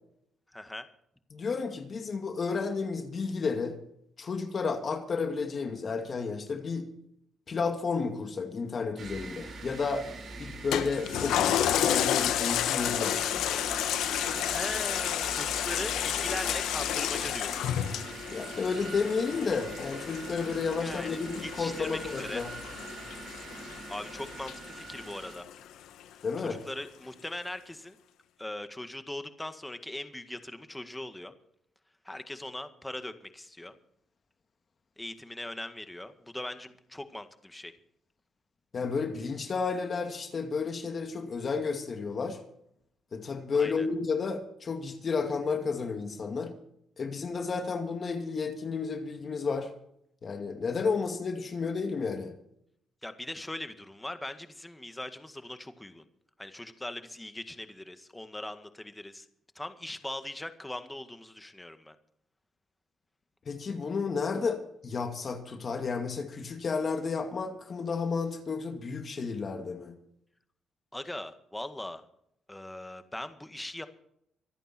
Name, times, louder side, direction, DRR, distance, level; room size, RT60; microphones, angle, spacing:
voice 1, 0.5-0.9 14.3-17.7 20.8-22.4 23.9-25.5 26.4-28.0 28.4-31.3 32.0-33.7 35.0-37.7 43.5-43.9 53.0-56.0 56.4-59.3 59.6-62.0 70.9-72.0 72.5-73.9, left 1 dB, 10° left, 1.8 m, -40 dB
voice 2, 1.3-3.8 4.2-6.9 7.5-10.1 10.4-13.5 18.3-22.5 26.2-26.6 38.7-42.4 43.1-46.5 47.0-49.7 50.2-52.3 63.5-70.0, left 5 dB, 45° left, 2.4 m, -32 dB
sound 1, 9.0-25.4, right 3 dB, 55° right, 5.1 m, -43 dB
Toilet flush, 10.7-25.5 26.0-26.1, left 11 dB, 85° left, 1.3 m, -31 dB
25.0 x 9.0 x 4.4 m
cardioid pair, 90°, 0 cm